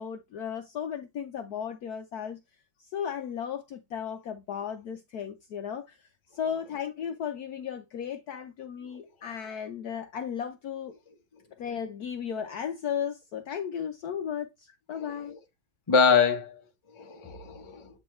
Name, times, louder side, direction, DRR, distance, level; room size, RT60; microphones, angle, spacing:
voice 1, 0.0-2.4 2.9-5.8 6.3-10.9 11.6-14.5 14.9-15.3, left 8 dB, 65° left, 1.0 m, -35 dB
voice 2, 14.9-15.4 15.9-16.6 16.9-17.9, left 6 dB, 25° left, 0.7 m, -25 dB
8.5 x 4.7 x 3.1 m
omnidirectional pair, 2.1 m